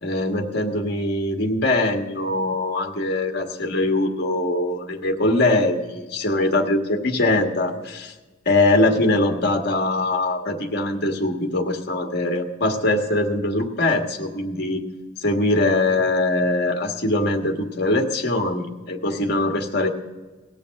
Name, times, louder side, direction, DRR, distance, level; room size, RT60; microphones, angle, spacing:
voice 1, 0.0-8.1 8.4-14.8 15.2-19.9, left 2 dB, 55° left, 3 dB, 1.5 m, -22 dB
18.5 x 7.1 x 6.5 m, 1.2 s
head